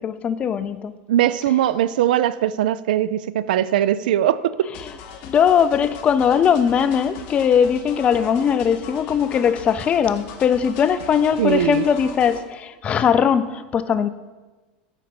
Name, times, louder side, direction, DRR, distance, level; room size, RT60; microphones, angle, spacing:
voice 1, 0.0-0.9 4.8-4.9 5.2-14.1, left 7 dB, 25° left, 13 dB, 0.3 m, -20 dB
voice 2, 1.1-4.7 11.4-11.8, right 11 dB, 90° right, 16 dB, 0.3 m, -20 dB
sound 1, 4.7-12.4, left 7 dB, 55° left, 0.8 m, -39 dB
7.1 x 5.1 x 4.3 m, 1.2 s
supercardioid pair, 135°, 5 cm